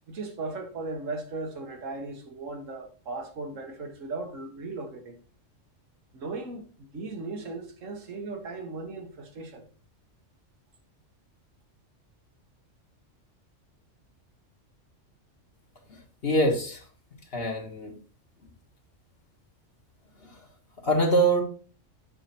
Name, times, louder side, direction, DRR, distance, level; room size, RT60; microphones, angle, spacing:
voice 1, 0.1-5.2 6.1-9.7, right 3 dB, 85° right, 1.7 m, -37 dB
voice 2, 15.9-16.8 17.3-17.9 20.2-20.4 20.8-21.4, right 1 dB, 50° left, 1.9 m, -24 dB
8.8 x 4.7 x 4.3 m
omnidirectional pair, 1.3 m